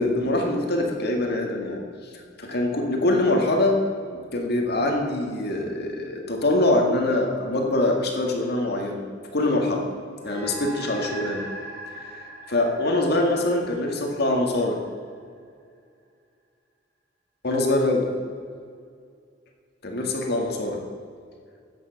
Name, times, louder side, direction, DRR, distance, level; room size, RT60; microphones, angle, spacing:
voice 1, 0.0-1.8 2.1-3.8 4.3-9.0 9.3-9.8 10.2-11.4 12.5-14.8 17.4-18.1 19.8-20.8, left 2 dB, 60° left, 2 dB, 2.0 m, -23 dB
sound 1, 10.2-14.9, right 2 dB, 55° right, 3.2 m, -40 dB
13.5 x 9.1 x 5.8 m, 2.2 s
head